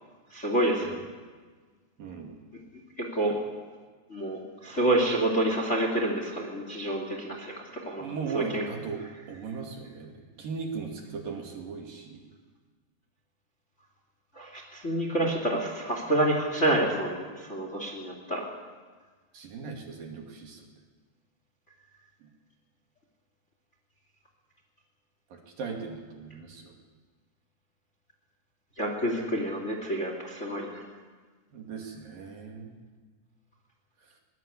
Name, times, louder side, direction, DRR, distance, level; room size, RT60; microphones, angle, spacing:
voice 1, 0.3-0.9 3.0-3.4 4.1-7.5 7.8-8.1 8.3-8.6 14.3-18.4 28.8-30.7, right 1 dB, 20° left, 2 dB, 2.7 m, -28 dB
voice 2, 2.0-2.3 8.0-9.0 9.3-10.1 10.4-12.3 19.3-20.6 25.3-26.7 31.5-32.7, right 5 dB, 55° right, 1 dB, 3.9 m, -37 dB
21.5 x 21.5 x 8.5 m, 1.4 s
omnidirectional pair, 5.0 m